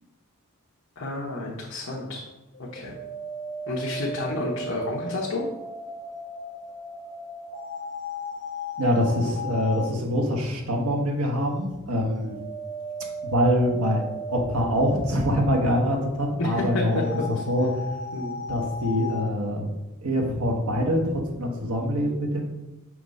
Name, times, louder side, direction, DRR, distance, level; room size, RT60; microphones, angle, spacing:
voice 1, 1.0-2.2 2.6-2.9 3.7-5.4 16.4-17.3 18.1-18.4, left 2 dB, 65° left, -4 dB, 0.9 m, -30 dB
sound 1, 2.5-9.9 11.9-19.2, left 1 dB, 45° left, 1.2 m, -36 dB
voice 2, 8.8-12.4 13.0-14.0 14.3-17.0 17.3-17.8 18.5-19.7 20.0-22.5, equal, 85° right, 1 dB, 1.2 m, -24 dB
6.0 x 3.1 x 5.3 m, 1.0 s
head